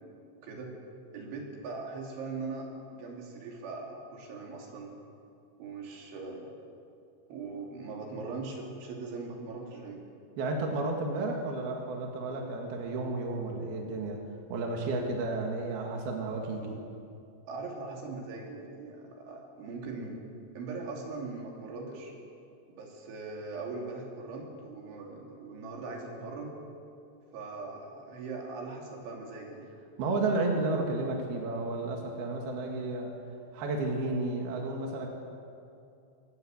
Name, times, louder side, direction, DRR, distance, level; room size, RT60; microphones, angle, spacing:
voice 1, 1.1-4.9 5.6-6.5 7.3-10.0 17.5-20.2 20.6-22.1 22.8-26.6 27.3-29.7, right 3 dB, 75° right, -1 dB, 5.7 m, -40 dB
voice 2, 10.4-14.2 14.5-16.8 30.0-33.1 33.5-35.1, right 2 dB, 60° right, 1 dB, 3.7 m, -32 dB
24.5 x 18.5 x 8.1 m, 2.5 s
omnidirectional pair, 5.4 m